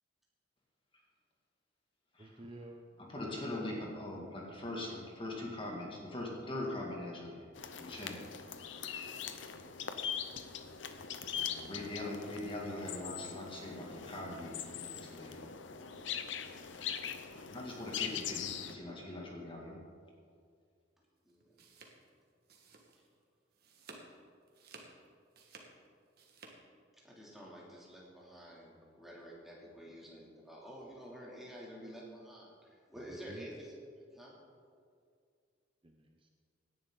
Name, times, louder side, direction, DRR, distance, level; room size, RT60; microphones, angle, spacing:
voice 1, 2.2-2.9 3.2-3.6 32.9-33.5 35.8-36.3, right 1 dB, 25° right, 3 dB, 0.7 m, -51 dB
voice 2, 3.1-7.4 7.7-8.2 8.8-9.0 11.3-15.4 17.5-19.8, left 1 dB, 25° left, -2 dB, 2.3 m, -42 dB
sound 1, 7.5-18.7, left 8 dB, 70° left, 0.8 m, -42 dB
sound 2, 21.3-23.2 23.5-24.1 24.5-26.5, right 3 dB, 55° right, 1.7 m, -55 dB
voice 3, 27.0-33.8 34.1-34.3, equal, ahead, -5 dB, 2.9 m, -50 dB
17.5 x 10.5 x 4.0 m, 2.2 s
head